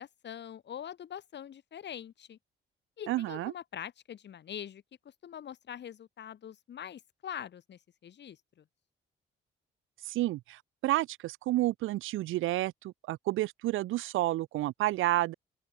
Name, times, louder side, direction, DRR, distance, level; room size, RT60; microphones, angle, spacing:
voice 1, 0.0-2.4 3.0-4.8 5.2-8.6, left 9 dB, 60° left, 4.8 m, -44 dB
voice 2, 3.1-3.5 10.1-15.3, right 16 dB, 90° right, 1.2 m, -30 dB
open air
cardioid pair, 90°, 20 cm